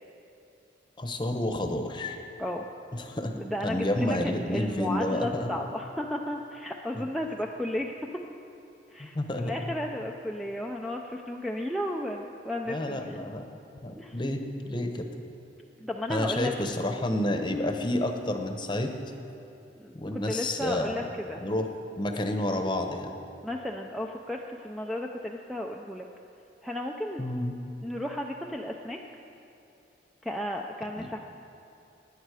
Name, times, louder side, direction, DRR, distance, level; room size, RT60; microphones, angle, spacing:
voice 1, 1.0-2.2 2.9-3.3 3.6-5.5 7.0-7.1 9.1-9.5 12.7-13.4 13.8-15.1 16.1-18.9 19.9-21.0 21.4-21.7 22.0-23.2 27.2-27.6 31.0-31.1, left 1 dB, 25° left, 5 dB, 0.9 m, -30 dB
voice 2, 3.3-7.9 8.9-13.2 14.0-14.2 15.8-16.5 19.8-21.4 23.4-26.1 26.6-27.2 27.8-29.2 30.2-31.2, left 1 dB, ahead, 1 dB, 0.4 m, -34 dB
17.0 x 9.9 x 4.8 m, 2.8 s
head